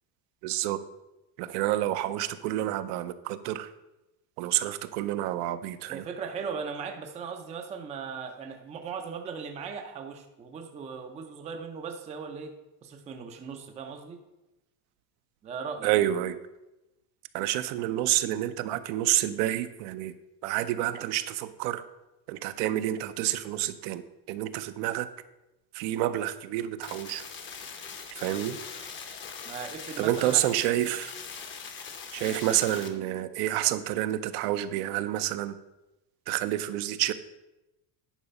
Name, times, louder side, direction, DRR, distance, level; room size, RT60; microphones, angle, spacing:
voice 1, 0.4-0.8 1.4-3.7 4.4-6.1 15.8-16.4 17.3-20.1 20.4-21.8 22.3-25.1 25.7-27.2 28.1-28.6 30.0-31.1 32.1-35.6 36.3-37.1, right 13 dB, 70° right, 12 dB, 0.7 m, -29 dB
voice 2, 5.9-12.6 12.8-14.2 15.4-16.0 29.4-30.4 32.2-32.4, right 6 dB, 15° right, 4 dB, 0.4 m, -38 dB
sound 1, 26.8-32.9, left 6 dB, 25° left, 0.7 m, -41 dB
10.0 x 4.8 x 5.3 m, 0.97 s
cardioid pair, 165°, 48 cm